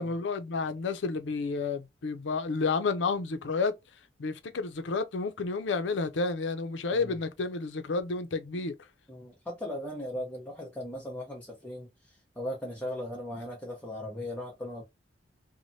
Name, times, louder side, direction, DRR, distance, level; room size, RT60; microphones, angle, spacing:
voice 1, 0.0-3.7 4.2-8.7, left 4 dB, 85° left, 0.5 m, -30 dB
voice 2, 9.1-14.8, left 1 dB, 10° left, 0.8 m, -38 dB
3.2 x 2.1 x 2.6 m
head